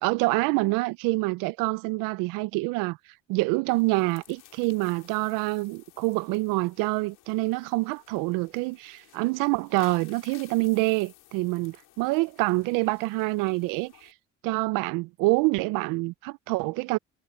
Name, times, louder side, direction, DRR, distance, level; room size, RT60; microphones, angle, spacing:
voice 1, 0.0-3.0 3.3-14.1 14.4-17.0, right 23 dB, 85° right, 0.6 m, -26 dB
sound 1, 3.7-14.1, left 15 dB, 75° left, 5.4 m, -56 dB
supercardioid pair, 70°, 32 cm